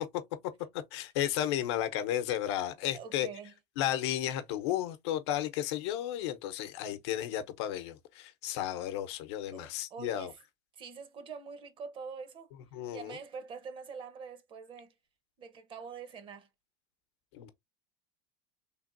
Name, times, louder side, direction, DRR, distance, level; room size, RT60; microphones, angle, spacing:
voice 1, 0.9-3.3 3.8-10.3 12.7-13.2 17.3-17.5, left 11 dB, 80° left, 0.7 m, -33 dB
voice 2, 2.9-3.5 9.5-10.4 10.7-12.5 12.9-15.0 15.4-16.5, right 5 dB, 35° right, 0.8 m, -45 dB
3.4 x 2.5 x 2.5 m
supercardioid pair, 125°, 14 cm